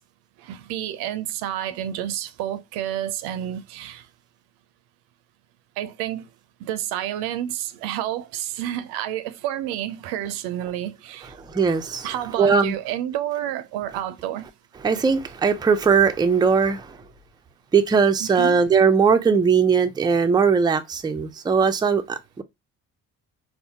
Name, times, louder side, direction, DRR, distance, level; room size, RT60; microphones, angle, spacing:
voice 1, 0.4-4.1 5.8-6.2 6.6-11.4 12.0-14.5 18.2-18.6, right 12 dB, 70° right, 0.5 m, -30 dB
voice 2, 11.4-12.1 12.4-12.7 14.8-17.0 17.7-22.4, right 5 dB, 10° right, 0.4 m, -19 dB
4.2 x 2.1 x 2.8 m
hypercardioid pair, 50°, 40 cm